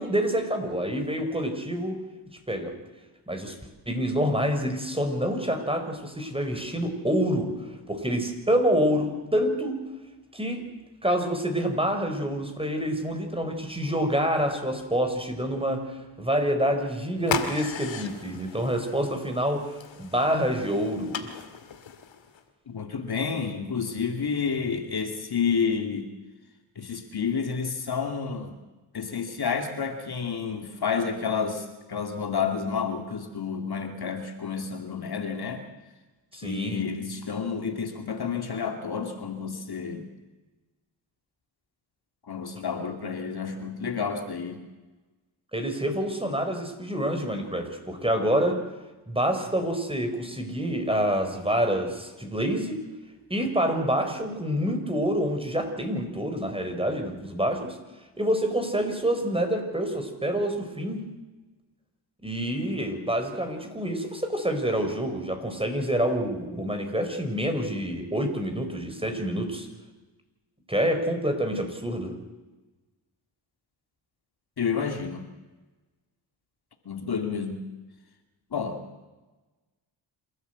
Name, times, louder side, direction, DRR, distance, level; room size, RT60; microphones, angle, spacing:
voice 1, 0.0-2.0 2.5-2.7 3.3-3.6 3.9-7.5 7.9-9.7 10.3-10.6 11.0-15.9 16.2-21.3 36.3-36.8 45.5-48.6 49.1-52.8 53.3-57.8 58.2-61.0 62.2-69.7 70.7-72.2, equal, 10° right, 6 dB, 5.0 m, -27 dB
sound 1, 17.2-22.4, left 7 dB, 70° left, 2.3 m, -37 dB
voice 2, 22.7-26.1 26.8-28.6 28.9-35.6 36.3-40.1 42.2-44.6 74.6-75.3 76.9-77.7 78.5-78.8, left 6 dB, 50° left, 5 dB, 2.5 m, -30 dB
27.5 x 12.5 x 8.2 m, 1.2 s
cardioid pair, 55°, 48 cm